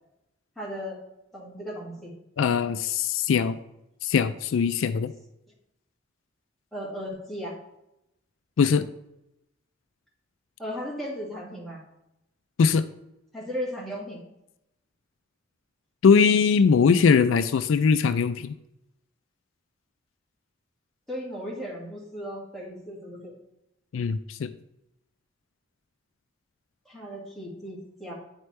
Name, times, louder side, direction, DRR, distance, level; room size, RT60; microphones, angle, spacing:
voice 1, 0.6-1.0 1.3-2.1 6.7-7.6 10.6-11.8 13.3-14.2 21.1-23.3 26.9-28.1, equal, ahead, -6 dB, 1.9 m, -36 dB
voice 2, 2.4-3.6 4.0-5.1 8.6-8.9 12.6-12.8 16.0-18.5 23.9-24.5, left 6 dB, 85° left, 12 dB, 0.4 m, -21 dB
9.6 x 4.4 x 3.2 m, 0.86 s
head